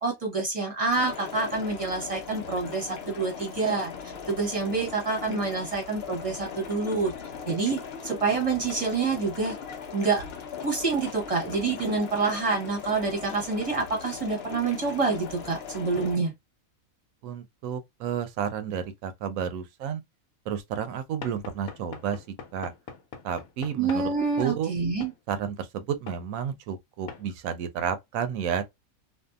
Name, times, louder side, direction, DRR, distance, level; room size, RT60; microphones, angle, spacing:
voice 1, 0.0-7.1 7.5-9.5 9.9-10.2 10.6-16.3 23.8-25.1, right 4 dB, 30° right, 0.9 m, -27 dB
sound 1, 0.9-16.2, left 6 dB, 55° left, 0.8 m, -39 dB
voice 2, 17.2-20.0 20.5-22.2 22.5-22.7 23.2-24.1 24.4-24.7 25.3-28.6, right 8 dB, 75° right, 1.0 m, -31 dB
Knock / Wood, 21.2-24.1 25.0-25.2 26.1-26.2 27.1-27.3, left 6 dB, 80° left, 1.1 m, -42 dB
2.7 x 2.4 x 2.3 m
omnidirectional pair, 1.5 m